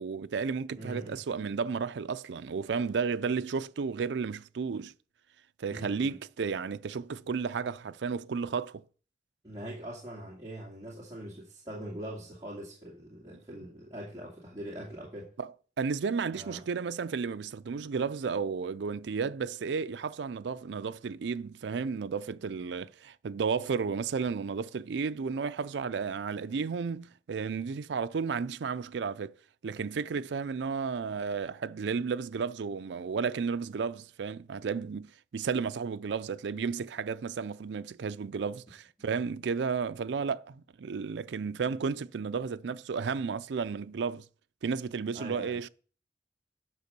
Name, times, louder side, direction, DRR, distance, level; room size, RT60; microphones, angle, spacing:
voice 1, 0.0-4.9 5.6-8.8 15.4-15.5 15.8-29.4 29.6-44.3 44.6-45.7, right 5 dB, 90° right, 0.4 m, -33 dB
voice 2, 0.7-1.2 5.7-6.2 9.4-15.3 16.3-16.6 45.1-45.6, right 1 dB, 20° right, 2.2 m, -42 dB
9.4 x 5.3 x 6.7 m
head